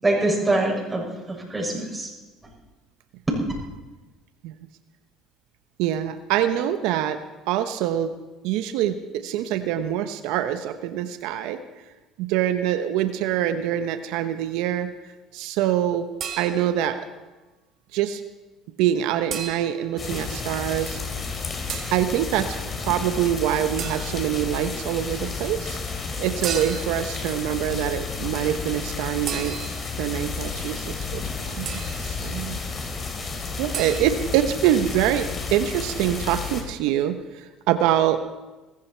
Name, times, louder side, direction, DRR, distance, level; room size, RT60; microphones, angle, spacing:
voice 1, 0.0-2.1 3.3-3.4, right 2 dB, 15° right, -2 dB, 6.7 m, -24 dB
voice 2, 5.8-7.2 7.5-8.1 8.4-11.6 12.2-14.9 15.3-16.1 16.4-17.0 17.9-18.2 18.8-21.0 21.9-22.6 22.8-29.6 30.0-32.6 33.6-38.2, right 11 dB, 75° right, 9 dB, 0.9 m, -25 dB
sound 1, 16.2-16.9 19.3-19.9 21.7-22.1 23.8-24.3 26.4-27.1 29.3-30.0 31.7-32.1 33.7-34.0, right 8 dB, 50° right, 1.9 m, -34 dB
sound 2, 20.0-36.6, left 4 dB, 35° left, 3.3 m, -32 dB
20.5 x 14.5 x 4.5 m, 1.2 s
supercardioid pair, 90°, 0 cm